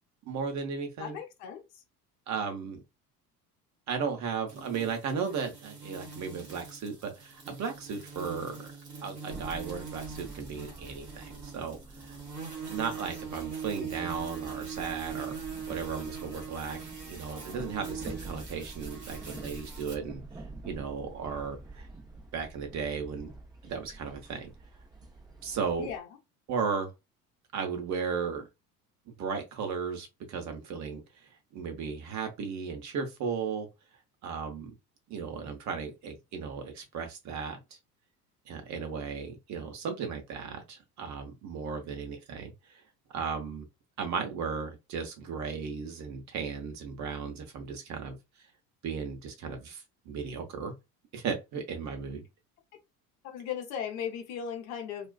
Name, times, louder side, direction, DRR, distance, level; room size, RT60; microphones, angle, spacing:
voice 1, 0.3-1.2 2.3-2.8 3.9-8.7 9.0-12.2 12.7-15.4 15.7-20.2 20.6-21.9 22.3-23.3 23.6-24.5 25.4-25.9 26.5-26.9 27.5-28.5 29.2-31.0 31.5-33.7 34.2-34.7 35.1-37.6 38.5-42.5 43.1-43.7 44.0-48.2 48.8-50.7 51.1-52.2, right 6 dB, 35° right, 0.8 m, -35 dB
voice 2, 1.0-1.8 25.8-26.1 53.2-55.1, left 8 dB, 55° left, 0.8 m, -37 dB
sound 1, 4.5-19.9, right 6 dB, 90° right, 0.9 m, -42 dB
sound 2, 9.3-26.0, right 2 dB, 10° right, 0.5 m, -47 dB
2.4 x 2.3 x 2.2 m
figure-of-eight pair, 65°, 47 cm